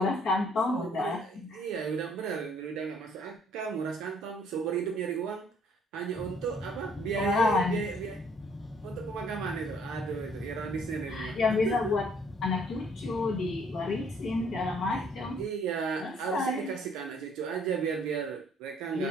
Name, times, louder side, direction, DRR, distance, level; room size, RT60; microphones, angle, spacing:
voice 1, 0.0-1.6 7.2-7.8 11.1-12.1 12.4-15.4 16.0-16.7 18.9-19.1, left 3 dB, 65° left, -1 dB, 0.9 m, -29 dB
voice 2, 0.7-5.5 5.9-8.2 8.8-11.9 14.9-15.1 15.4-19.1, right 7 dB, 85° right, 2 dB, 0.6 m, -34 dB
sound 1, 6.2-15.5, left 2 dB, 20° left, 0.4 m, -41 dB
2.4 x 2.1 x 2.8 m, 0.37 s
supercardioid pair, 70°, 0 cm